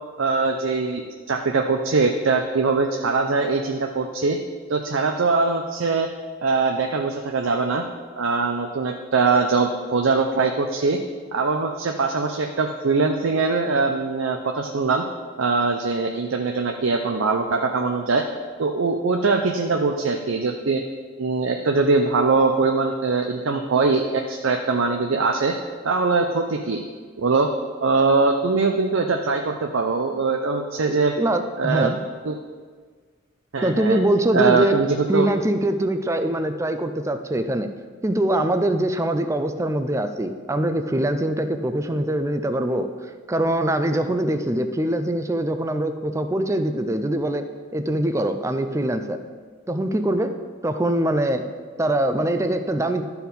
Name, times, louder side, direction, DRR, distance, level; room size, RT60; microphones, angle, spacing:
voice 1, 0.2-4.4 4.7-6.1 6.4-7.8 8.2-11.0 11.3-15.0 15.4-18.3 18.6-20.8 21.2-25.5 25.8-26.8 27.2-27.5 27.8-31.2 31.6-31.9 32.2-32.3 33.5-34.0 34.3-34.9 35.1-35.3, right 4 dB, 75° right, 3 dB, 0.6 m, -22 dB
voice 2, 30.8-32.0 33.6-34.8 35.1-37.7 38.0-42.9 43.3-47.4 47.7-49.2 49.7-50.3 50.6-51.4 51.8-53.0, right 1 dB, 15° right, 8 dB, 0.5 m, -23 dB
12.0 x 4.7 x 5.2 m, 1.6 s
head